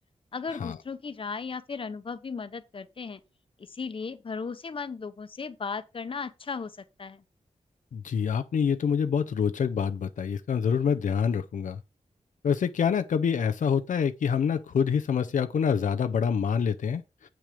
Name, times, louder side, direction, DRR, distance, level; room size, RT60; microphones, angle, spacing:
voice 1, 0.3-3.2 3.7-6.7 7.0-7.2, left 5 dB, 45° left, 0.9 m, -36 dB
voice 2, 7.9-11.8 12.4-17.0, left 7 dB, 85° left, 0.6 m, -26 dB
8.2 x 6.1 x 5.1 m
wide cardioid pair, 155°, 13 cm